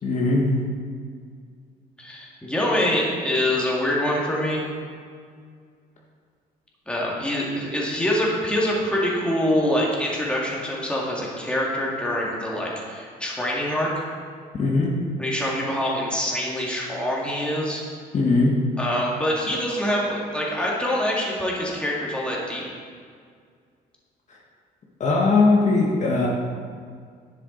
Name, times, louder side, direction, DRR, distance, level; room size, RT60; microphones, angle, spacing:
voice 1, 0.0-0.5 14.5-14.9 18.1-18.5 24.3-24.4 25.0-26.3, left 3 dB, 45° left, -3 dB, 1.5 m, -19 dB
voice 2, 2.0-4.6 6.9-14.0 15.2-17.8 18.8-22.6, left 1 dB, 5° left, -4 dB, 2.2 m, -25 dB
10.5 x 7.5 x 4.0 m, 2.1 s
cardioid pair, 110°, 17 cm